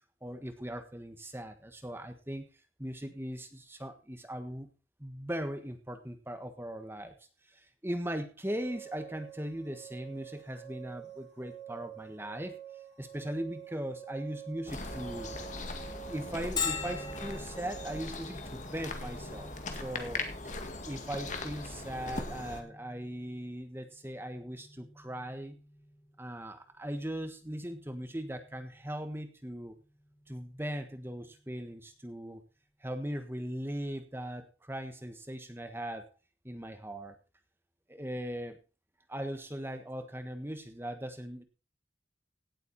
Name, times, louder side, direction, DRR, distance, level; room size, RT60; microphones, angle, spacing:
voice 1, 0.2-2.5 2.8-4.7 5.0-7.1 7.5-12.6 13.0-15.3 16.1-20.2 20.8-25.6 26.2-29.8 30.3-32.4 32.8-36.1 36.4-37.1 37.9-38.6 39.1-41.4, right 1 dB, 10° right, 8 dB, 1.5 m, -39 dB
sound 1, 8.4-18.0, right 10 dB, 65° left, 6.9 m, -48 dB
sound 2, 14.7-22.6, left 2 dB, 40° left, 1.9 m, -40 dB
Bell, 16.6-32.0, left 5 dB, 25° left, 1.6 m, -45 dB
17.5 x 8.2 x 4.3 m, 0.32 s
head